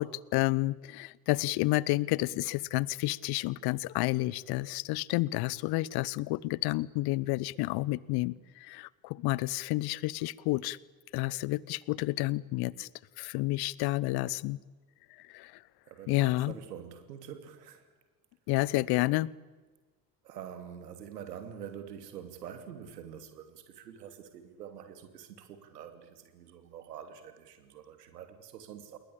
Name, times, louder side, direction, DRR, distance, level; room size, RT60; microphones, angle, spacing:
voice 1, 0.0-10.8 11.1-12.9 13.2-14.6 15.3-15.6 16.1-16.5 18.5-19.3, left 19 dB, 50° left, 24 dB, 0.9 m, -30 dB
voice 2, 15.9-17.9 20.2-29.0, right 8 dB, 75° right, 8 dB, 3.1 m, -46 dB
28.0 x 22.5 x 8.6 m, 1.3 s
figure-of-eight pair, 55°, 48 cm